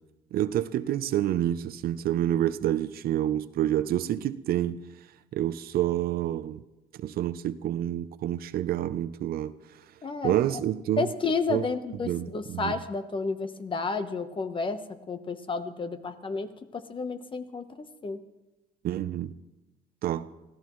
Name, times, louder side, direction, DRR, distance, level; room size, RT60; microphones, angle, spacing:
voice 1, 0.3-4.8 5.3-6.6 7.0-9.5 10.2-11.1 11.5-11.6 12.0-12.7 18.8-19.3 20.0-20.3, right 12 dB, 60° right, 0.6 m, -28 dB
voice 2, 10.0-10.4 11.0-18.2, left 4 dB, 30° left, 1.1 m, -31 dB
25.0 x 15.5 x 3.1 m
cardioid pair, 110°, 17 cm